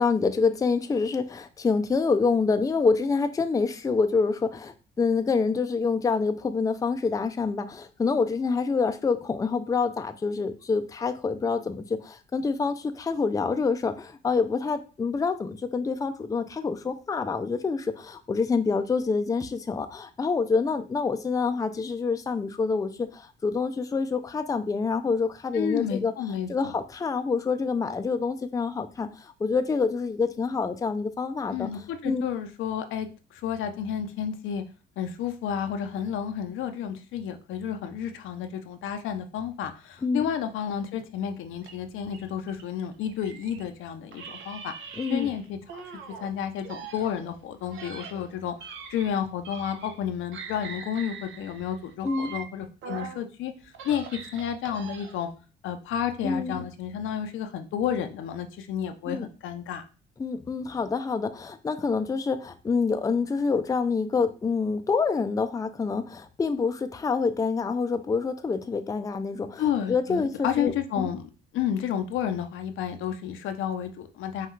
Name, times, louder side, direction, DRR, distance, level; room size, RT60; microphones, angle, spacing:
voice 1, 0.0-26.1 26.5-31.7 32.0-32.2 40.0-40.3 45.0-45.3 52.0-52.3 56.2-56.6 59.1-59.3 60.2-71.1, left 4 dB, 15° left, 9 dB, 0.4 m, -27 dB
voice 2, 25.5-26.7 31.5-34.6 35.0-44.7 45.1-45.8 46.2-53.5 53.8-55.3 55.6-59.8 69.6-71.2 71.5-74.5, left 8 dB, 85° left, 7 dB, 0.6 m, -31 dB
sound 1, 41.6-43.7 44.1-46.3 46.6-50.1 50.3-53.2 53.6-55.3, right 6 dB, 75° right, 0.8 m, -42 dB
5.6 x 2.4 x 3.1 m, 0.35 s
cardioid pair, 90°, 20 cm